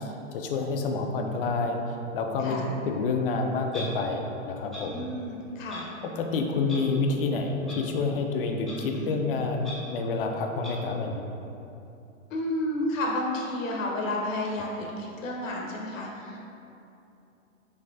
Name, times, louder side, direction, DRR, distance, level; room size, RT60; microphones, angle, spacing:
voice 1, 0.0-1.8 2.1-2.6 2.8-5.0 6.2-11.3, left 3 dB, 45° left, 3 dB, 0.5 m, -28 dB
voice 2, 2.4-2.7 4.8-5.9 8.7-9.1 12.3-16.4, left 1 dB, 75° left, -1 dB, 0.8 m, -31 dB
Clock, 3.7-3.9 4.7-4.8 5.7-5.8 6.7-6.8 7.7-7.8 8.7-8.8 9.6-9.7 10.6-10.7, left 2 dB, ahead, 0.8 m, -39 dB
5.7 x 3.2 x 2.6 m, 2.8 s
hypercardioid pair, 125°, 40 cm